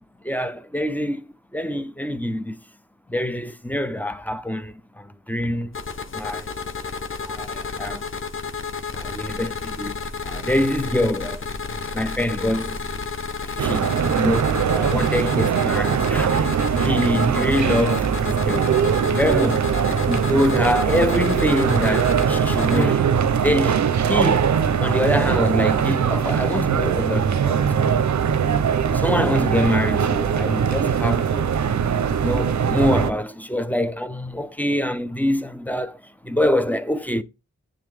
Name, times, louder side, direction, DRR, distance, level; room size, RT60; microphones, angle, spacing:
voice 1, 0.2-2.6 3.1-5.8 6.1-6.5 7.2-8.0 8.9-11.5 11.9-12.8 13.5-18.7 19.2-19.7 20.0-23.1 23.4-24.5 24.8-28.1 28.9-31.8 32.2-37.2, left 1 dB, 5° left, 0.5 m, -25 dB
sound 1, 5.7-22.8, left 5 dB, 40° left, 0.8 m, -31 dB
sound 2, 13.6-33.1, right 7 dB, 65° right, 0.6 m, -21 dB
8.5 x 3.8 x 3.3 m
wide cardioid pair, 85°, 31 cm